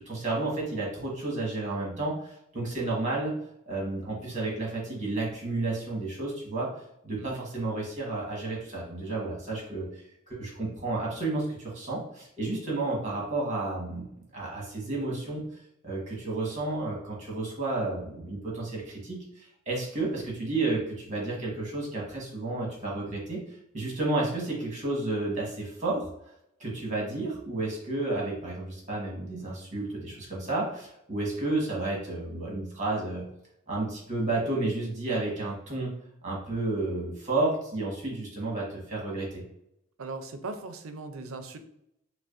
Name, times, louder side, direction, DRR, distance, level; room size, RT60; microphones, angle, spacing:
voice 1, 0.0-3.3 3.7-6.7 7.0-14.1 14.3-15.4 15.8-26.1 26.6-33.2 33.7-35.9 36.2-39.4, right 2 dB, 35° right, -3 dB, 1.4 m, -31 dB
voice 2, 40.0-41.6, right 3 dB, 70° right, 8 dB, 0.5 m, -39 dB
5.9 x 2.1 x 2.6 m, 0.78 s
head